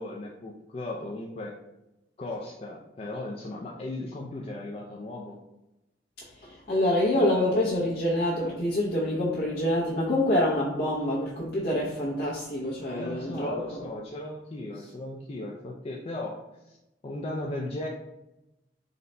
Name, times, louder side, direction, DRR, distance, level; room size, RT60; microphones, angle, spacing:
voice 1, 0.0-1.5 2.2-5.4 12.9-16.8 17.0-17.9, left 2 dB, 35° left, -2 dB, 0.4 m, -36 dB
voice 2, 6.4-13.8, left 1 dB, 60° left, -7 dB, 0.7 m, -26 dB
3.8 x 2.2 x 4.0 m, 0.93 s
head